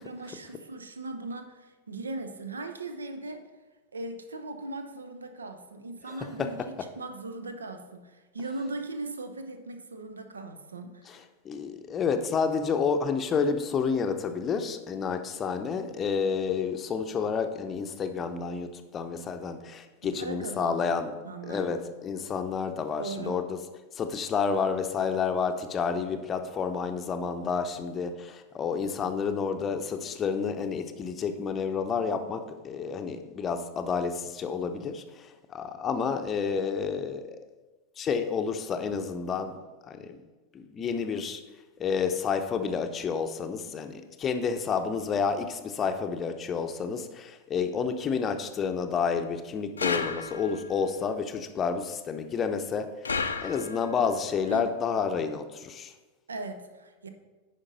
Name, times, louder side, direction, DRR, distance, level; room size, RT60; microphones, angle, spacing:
voice 1, 0.0-3.5 3.9-6.6 7.0-11.2 20.2-21.0 21.2-21.8 23.0-23.4 54.5-54.6 56.3-57.1, right 2 dB, 75° right, 7 dB, 0.7 m, -38 dB
voice 2, 6.1-6.7 11.1-11.2 11.4-21.1 21.5-23.6 23.9-37.4 38.0-39.5 39.9-40.2 40.5-41.4 41.8-52.9 53.4-55.9, left 6 dB, 25° left, 7 dB, 0.7 m, -30 dB
sound 1, 49.8-50.7 53.0-54.0, left 5 dB, 75° left, 0.5 m, -32 dB
9.8 x 5.2 x 3.9 m, 1.2 s
figure-of-eight pair, 90°, 0 cm